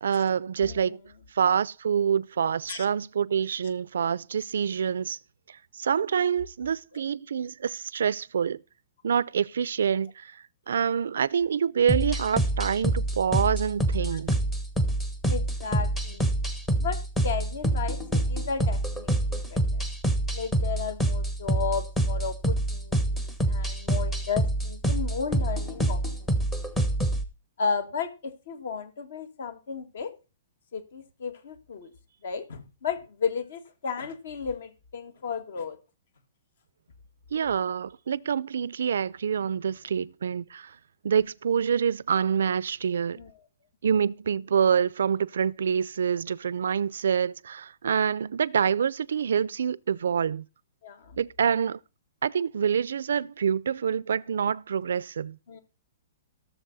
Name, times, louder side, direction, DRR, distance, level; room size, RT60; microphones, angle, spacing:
voice 1, 0.0-1.0 1.3-5.2 5.5-8.6 9.0-14.3 37.3-40.8 41.0-43.2 43.8-50.5 51.2-51.8 52.2-55.4, right 7 dB, 85° right, 0.5 m, -26 dB
voice 2, 0.6-1.0 2.7-2.9 14.1-14.2 15.3-16.3 16.8-19.8 20.3-26.3 26.5-26.7 27.6-30.1 30.7-31.9 32.2-35.8 43.2-43.3 50.8-51.2 55.5-55.6, left 6 dB, 60° left, 2.0 m, -34 dB
sound 1, 11.9-27.2, right 1 dB, 5° left, 0.8 m, -26 dB
17.0 x 7.1 x 4.1 m
hypercardioid pair, 175°, 0 cm